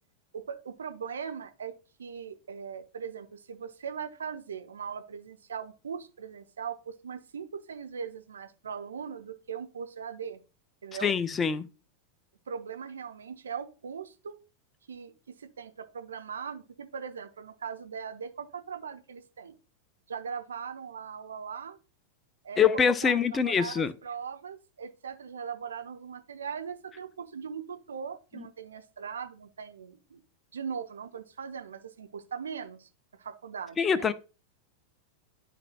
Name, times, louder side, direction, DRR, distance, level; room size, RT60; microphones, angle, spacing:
voice 1, 0.3-1.7 2.0-10.4 10.8-11.1 12.5-14.4 14.9-19.5 20.1-21.8 22.4-30.2 30.5-32.9 33.2-34.1, right 7 dB, 70° right, 0.9 m, -40 dB
voice 2, 11.0-11.7 22.6-23.9 33.8-34.1, left 7 dB, 20° left, 0.6 m, -24 dB
13.0 x 4.6 x 2.2 m
figure-of-eight pair, 90°, 0 cm